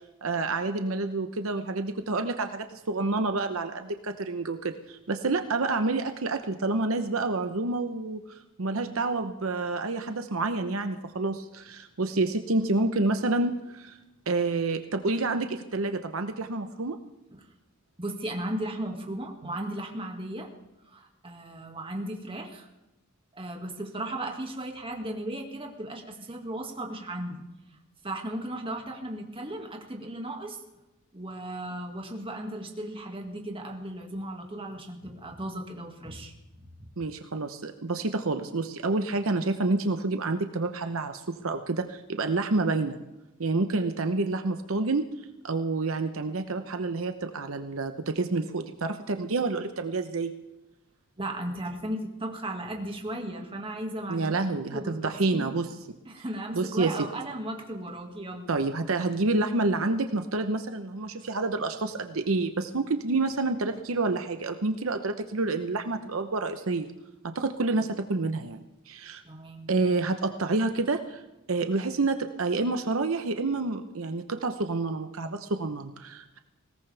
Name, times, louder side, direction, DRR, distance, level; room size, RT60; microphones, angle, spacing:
voice 1, 0.2-14.0 14.3-17.0 19.4-19.5 37.0-43.0 43.4-45.1 45.4-50.3 54.1-55.7 56.5-57.1 58.5-66.9 67.2-69.2 69.7-71.2 71.5-76.4, right 3 dB, 70° right, 7 dB, 0.9 m, -28 dB
voice 2, 18.0-20.5 20.9-22.7 23.3-27.5 28.0-30.6 31.1-36.3 36.8-36.9 51.2-54.4 54.7-55.5 56.1-58.5 69.2-69.7, right 1 dB, 25° right, 2 dB, 2.0 m, -36 dB
20.5 x 18.0 x 3.4 m, 0.98 s
head